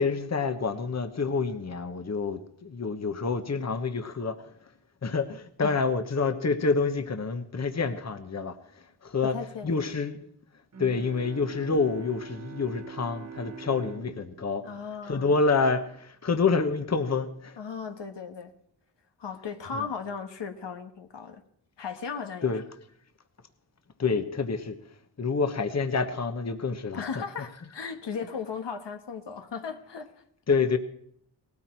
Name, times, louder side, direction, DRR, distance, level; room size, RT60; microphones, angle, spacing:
voice 1, 0.0-4.4 5.0-9.3 9.6-10.3 10.8-14.6 15.0-17.6 19.7-19.8 22.4-22.6 24.0-24.8 25.2-27.0 30.5-30.8, left 4 dB, 40° left, 8 dB, 1.1 m, -27 dB
voice 2, 9.2-9.9 14.6-15.3 17.6-18.5 19.2-21.4 21.8-22.5 26.9-30.1, left 6 dB, 80° left, 6 dB, 1.5 m, -36 dB
Bowed string instrument, 10.7-15.9, right 6 dB, 40° right, 1.1 m, -45 dB
18.5 x 13.5 x 4.5 m, 0.67 s
wide cardioid pair, 85°, 42 cm